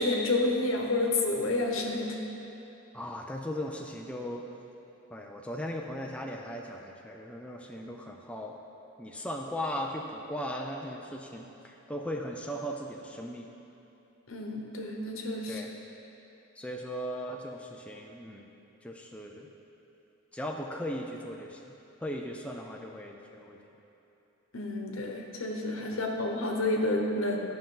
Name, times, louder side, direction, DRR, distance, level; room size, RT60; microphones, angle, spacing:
voice 1, 0.0-2.2 14.3-15.6 24.5-27.4, left 2 dB, 70° left, 1 dB, 1.1 m, -29 dB
voice 2, 2.9-4.5 5.1-8.6 9.0-13.5 15.5-15.7 16.6-18.5 18.8-19.5 20.3-21.7 22.0-23.6 25.9-26.0, equal, 5° left, 0 dB, 0.4 m, -38 dB
13.0 x 5.8 x 3.8 m, 2.9 s
head